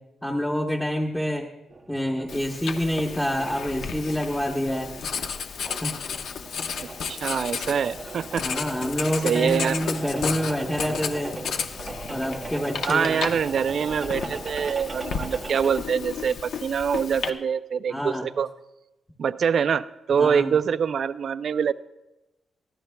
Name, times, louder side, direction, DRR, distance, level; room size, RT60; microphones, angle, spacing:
voice 1, 0.2-1.5 1.9-4.9 5.8-6.0 8.4-11.3 12.1-13.1 17.9-18.2 20.1-20.5, equal, 5° left, -2 dB, 0.9 m, -27 dB
sound 1, 1.7-15.8, right 3 dB, 25° right, 0.7 m, -39 dB
Writing, 2.3-17.3, left 6 dB, 60° left, 0.9 m, -33 dB
voice 2, 6.8-8.5 9.2-9.8 12.8-18.5 19.2-21.7, right 7 dB, 45° right, 14 dB, 0.4 m, -25 dB
23.5 x 15.5 x 2.2 m, 0.96 s
wide cardioid pair, 180°, 0 cm